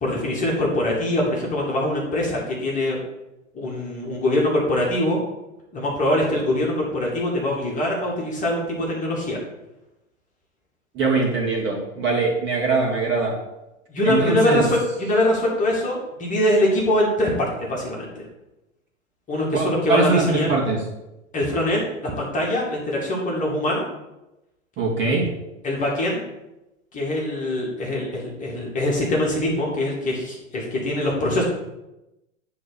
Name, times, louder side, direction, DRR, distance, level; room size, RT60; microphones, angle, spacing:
voice 1, 0.0-3.0 3.5-5.2 5.7-9.4 13.9-18.3 19.3-20.5 21.3-23.9 25.6-26.2 26.9-31.4, left 1 dB, 20° left, -3 dB, 2.1 m, -23 dB
voice 2, 10.9-13.4 14.0-14.6 19.5-20.8 24.8-25.3, right 3 dB, 30° right, -2 dB, 2.3 m, -22 dB
9.1 x 3.8 x 6.3 m, 0.95 s
figure-of-eight pair, 100°, 39 cm